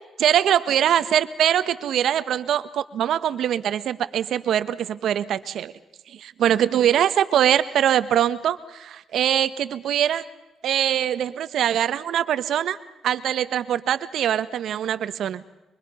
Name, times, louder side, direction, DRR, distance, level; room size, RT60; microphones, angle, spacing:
voice 1, 0.2-5.7 6.1-10.2 10.6-12.8 13.0-15.4, right 10 dB, 70° right, 13 dB, 1.2 m, -22 dB
24.5 x 24.0 x 5.7 m, 1.0 s
cardioid pair, 90°, 0 cm